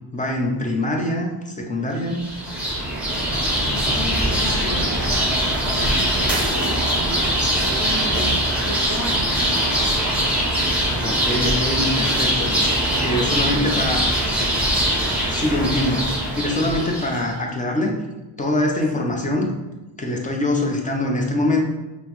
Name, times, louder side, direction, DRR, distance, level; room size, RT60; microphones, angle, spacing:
voice 1, 0.1-2.2 11.0-12.5 13.0-14.0 15.3-17.9 18.4-19.5 20.0-21.6, left 1 dB, 20° left, 0 dB, 0.5 m, -23 dB
sound 1, 2.1-17.2, equal, 5° right, 0.8 m, -22 dB
voice 2, 3.7-5.4 5.7-7.1 7.6-9.6 13.2-14.1 18.9-19.1, equal, 55° left, -2 dB, 0.7 m, -34 dB
5.3 x 2.0 x 3.0 m, 1.1 s
wide cardioid pair, 130°, 43 cm